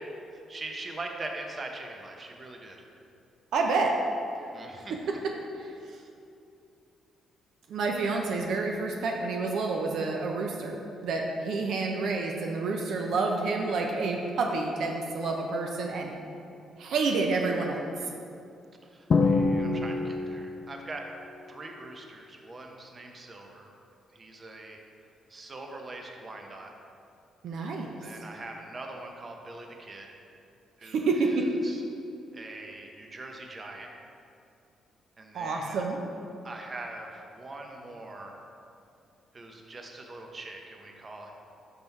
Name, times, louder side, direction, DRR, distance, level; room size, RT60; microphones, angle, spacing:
voice 1, 0.3-2.8 4.5-4.9 18.8-21.0 21.5-23.7 24.1-24.8 25.3-26.7 28.0-30.1 30.8-31.8 32.3-33.9 35.2-35.8 36.4-38.4 39.3-41.3, right 2 dB, 35° right, 2 dB, 0.8 m, -42 dB
voice 2, 3.5-3.9 4.9-5.0 5.6-5.7 7.7-10.8 11.0-16.2 16.8-17.8 27.4-28.0 30.8-31.5 35.3-36.0, right 3 dB, 70° right, 1 dB, 0.6 m, -29 dB
Drum, 19.1-20.8, left 3 dB, 50° left, 0.5 m, -25 dB
5.6 x 5.3 x 4.6 m, 2.6 s
cardioid pair, 90°, 0 cm